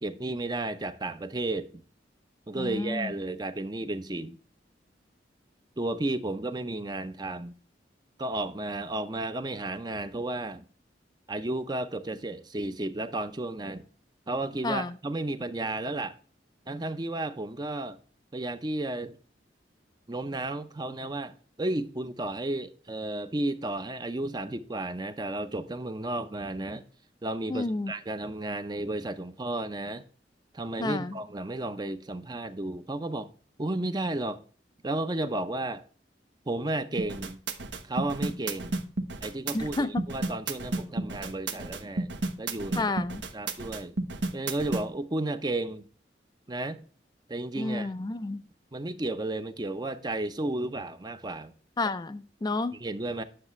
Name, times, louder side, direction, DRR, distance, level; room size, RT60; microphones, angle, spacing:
voice 1, 0.0-1.8 2.5-4.4 5.8-7.5 8.2-10.6 11.3-13.9 14.3-16.2 16.7-18.0 18.3-19.2 20.1-26.8 27.2-30.1 30.5-33.3 33.6-34.4 34.8-35.8 36.5-37.4 37.8-38.8 39.2-42.1 42.4-42.8 43.3-44.0 44.3-45.9 46.5-46.8 47.3-47.9 48.7-51.5 52.7-53.2, right 2 dB, 25° right, 0.6 m, -33 dB
voice 2, 2.5-3.1 14.6-14.9 27.5-27.9 30.8-31.2 39.5-40.0 42.7-43.2 47.6-48.4 51.8-52.8, left 2 dB, 20° left, 0.3 m, -30 dB
sound 1, 37.0-44.8, right 2 dB, 85° right, 1.1 m, -32 dB
9.7 x 6.6 x 3.1 m
head